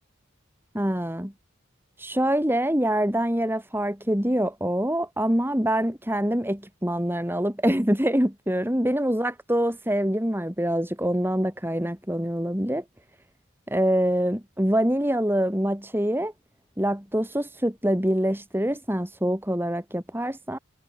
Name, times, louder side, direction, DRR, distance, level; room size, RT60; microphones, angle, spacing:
voice 1, 0.7-1.3 2.0-12.8 13.7-16.3 16.8-20.6, equal, 10° right, 3.5 m, -25 dB
head